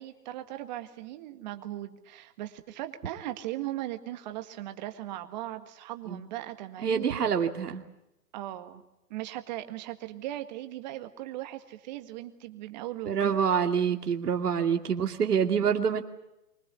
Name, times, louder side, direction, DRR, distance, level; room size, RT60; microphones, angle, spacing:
voice 1, 0.0-7.2 8.3-8.8 9.1-13.4, right 14 dB, 30° right, 8 dB, 1.8 m, -38 dB
voice 2, 6.8-7.8 13.1-16.0, right 7 dB, 75° right, 5 dB, 2.6 m, -26 dB
24.5 x 19.0 x 8.2 m, 0.91 s
hypercardioid pair, 160°, 47 cm